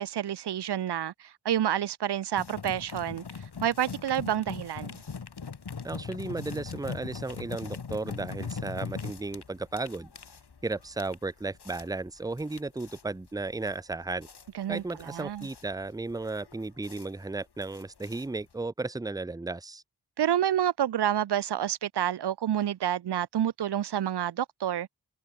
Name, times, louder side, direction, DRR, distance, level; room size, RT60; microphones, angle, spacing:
voice 1, 0.0-3.2 3.6-5.0 14.5-15.5 20.2-24.9, right 10 dB, 85° right, 0.5 m, -29 dB
sound 1, 2.4-18.7, left 5 dB, 80° left, 2.0 m, -41 dB
voice 2, 5.8-10.1 10.6-14.3 14.7-19.8, right 3 dB, 10° right, 0.6 m, -34 dB
wide cardioid pair, 80°, 39 cm